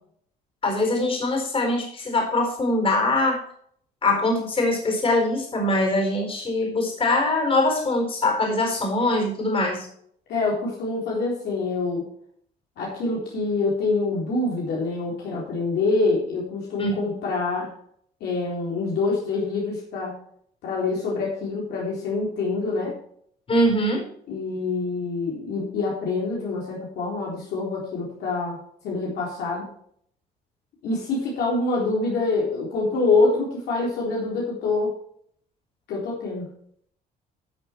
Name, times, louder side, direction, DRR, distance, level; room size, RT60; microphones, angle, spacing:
voice 1, 0.6-3.4 4.0-9.9 16.8-17.0 23.5-24.0, left 2 dB, 35° left, 2 dB, 4.4 m, -23 dB
voice 2, 10.3-12.1 12.8-17.7 18.2-20.2 20.6-23.0 24.3-29.7 30.8-34.9 35.9-36.5, left 3 dB, 75° left, -4 dB, 3.8 m, -26 dB
12.5 x 6.6 x 4.5 m, 0.64 s
cardioid pair, 110°, 17 cm